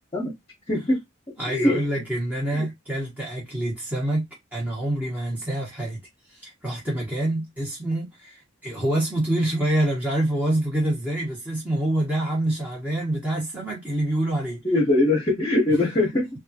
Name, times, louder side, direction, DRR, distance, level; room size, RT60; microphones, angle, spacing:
voice 1, 0.7-1.0 1.5-1.8 2.5-2.7 14.6-16.3, left 1 dB, 30° left, 0.9 m, -21 dB
voice 2, 1.4-4.2 4.5-6.0 6.3-14.6 15.7-15.8, right 1 dB, 10° right, 1.1 m, -26 dB
3.4 x 2.4 x 2.7 m
head